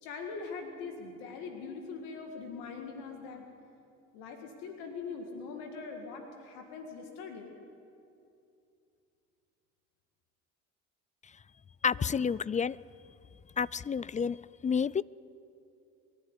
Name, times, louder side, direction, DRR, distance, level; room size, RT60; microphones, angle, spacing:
voice 1, 0.0-3.5 4.1-7.5 11.9-12.3, left 4 dB, 85° left, 3 dB, 2.0 m, -42 dB
voice 2, 11.8-12.8 13.6-14.4 14.6-15.0, left 6 dB, 20° left, 22 dB, 0.4 m, -29 dB
22.5 x 11.5 x 9.7 m, 2.6 s
hypercardioid pair, 60°, 35 cm